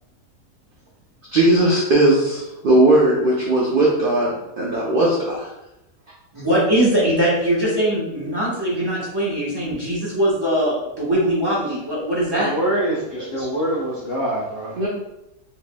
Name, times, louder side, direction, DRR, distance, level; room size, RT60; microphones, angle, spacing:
voice 1, 1.3-5.5 14.8-14.9, right 1 dB, 65° right, -4 dB, 0.5 m, -18 dB
voice 2, 6.3-12.5, right 1 dB, 15° right, -8 dB, 1.0 m, -21 dB
voice 3, 12.3-14.9, right 1 dB, 50° left, -7 dB, 0.8 m, -24 dB
4.4 x 3.0 x 2.2 m, 0.91 s
omnidirectional pair, 1.7 m